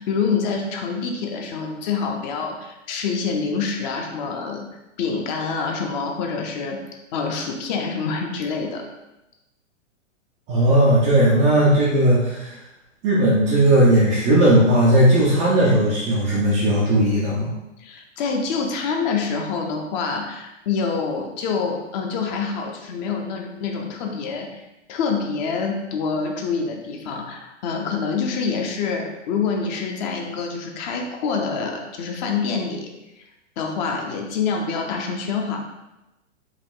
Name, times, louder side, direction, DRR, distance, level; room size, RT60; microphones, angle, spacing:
voice 1, 0.0-4.6 5.0-6.8 7.1-8.9 17.8-24.6 24.9-32.9 33.6-35.6, left 5 dB, 35° left, 2 dB, 0.7 m, -26 dB
voice 2, 10.5-12.6 13.0-17.5, right 1 dB, 15° right, -6 dB, 0.3 m, -17 dB
4.8 x 2.3 x 3.8 m, 0.97 s
hypercardioid pair, 120°, 37 cm